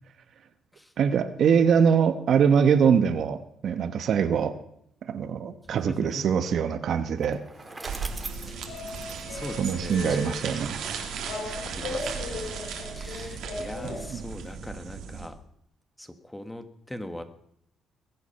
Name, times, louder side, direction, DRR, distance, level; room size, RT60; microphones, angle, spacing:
voice 1, 1.0-4.5 5.0-7.4 9.6-10.8 14.1-14.2, right 7 dB, 60° right, 10 dB, 1.0 m, -23 dB
voice 2, 5.7-6.2 8.5-8.7 9.3-10.4 11.6-15.4 16.0-17.2, left 1 dB, 5° left, 9 dB, 1.3 m, -41 dB
Bicycle, 7.2-10.4, right 3 dB, 20° right, 1.6 m, -42 dB
sound 1, 7.5-14.5, left 4 dB, 80° left, 2.6 m, -39 dB
sound 2, 7.8-15.3, right 6 dB, 80° right, 2.5 m, -36 dB
21.5 x 8.3 x 5.6 m, 0.70 s
cardioid pair, 120°, 0 cm